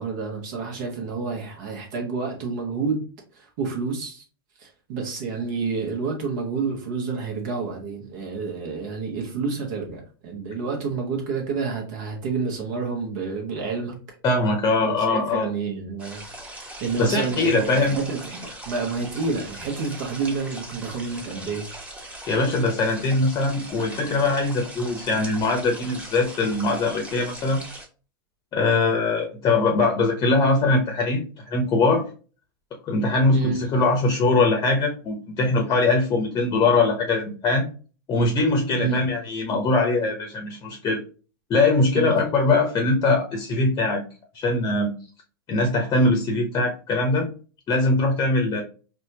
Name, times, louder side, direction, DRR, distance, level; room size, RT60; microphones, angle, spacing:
voice 1, 0.0-3.0 3.3-4.2 4.6-14.0 14.8-16.2 16.5-21.7 33.3-33.6 38.8-39.0 41.9-42.2, right 4 dB, 55° right, 1 dB, 1.1 m, -29 dB
voice 2, 14.2-15.5 17.0-18.0 22.3-27.6 28.5-32.1 32.8-37.7 38.1-41.0 41.5-44.0 44.3-44.9 45.5-47.3 47.7-48.6, left 2 dB, 30° left, 3 dB, 0.8 m, -22 dB
sound 1, 16.0-27.9, right 1 dB, 10° right, 1.0 m, -40 dB
4.1 x 2.3 x 2.7 m, 0.36 s
hypercardioid pair, 100°, 13 cm